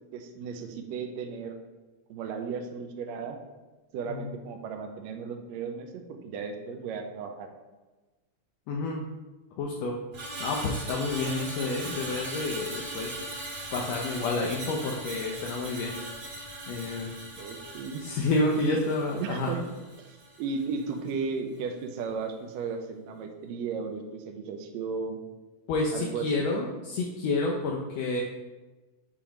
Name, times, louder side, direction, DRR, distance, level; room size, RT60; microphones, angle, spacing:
voice 1, 0.1-1.6 2.1-3.4 3.9-7.5 17.4-18.0 18.6-18.8 19.2-19.6 20.0-25.2 25.9-26.4, right 5 dB, 75° right, 4 dB, 1.7 m, -35 dB
voice 2, 8.7-9.0 9.6-10.0 10.4-13.2 13.7-15.9 16.7-17.1 18.0-19.5 25.7-28.2, left 3 dB, 80° left, -1 dB, 1.5 m, -29 dB
Screech, 10.1-20.5 20.8-21.1, right 2 dB, 45° right, 1.6 m, -39 dB
7.1 x 3.0 x 4.9 m, 1.2 s
omnidirectional pair, 3.6 m